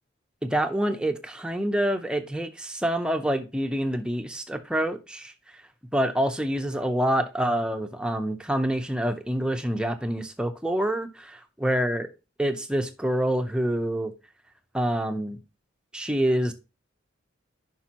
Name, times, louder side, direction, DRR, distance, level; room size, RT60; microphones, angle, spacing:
voice 1, 0.4-5.3 5.9-12.1 12.4-14.1 14.7-15.4 15.9-16.5, right 1 dB, 5° right, 0.6 m, -26 dB
10.0 x 5.2 x 2.9 m
head